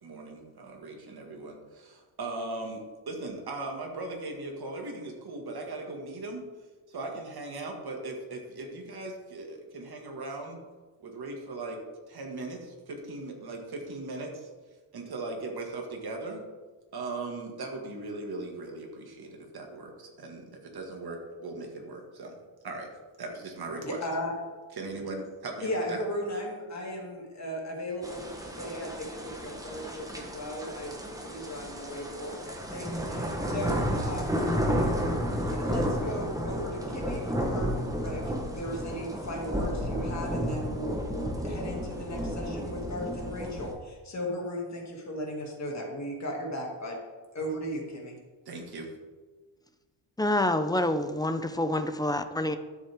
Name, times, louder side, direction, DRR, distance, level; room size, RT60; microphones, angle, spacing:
voice 1, 0.0-6.4 6.9-10.6 11.0-11.8 12.1-14.5 14.9-16.4 16.9-22.3 22.6-22.9 23.2-24.0 24.8-26.0 48.5-48.9, right 2 dB, 50° right, 2 dB, 2.0 m, -38 dB
voice 2, 23.8-24.3 25.6-34.5 35.4-47.0 47.3-48.2, equal, 35° left, -1 dB, 2.5 m, -36 dB
sound 1, 28.0-43.7, equal, 5° right, 1.1 m, -32 dB
voice 3, 50.2-52.6, left 1 dB, 10° left, 9 dB, 0.4 m, -27 dB
12.0 x 7.3 x 3.6 m, 1.3 s
wide cardioid pair, 135°, 49 cm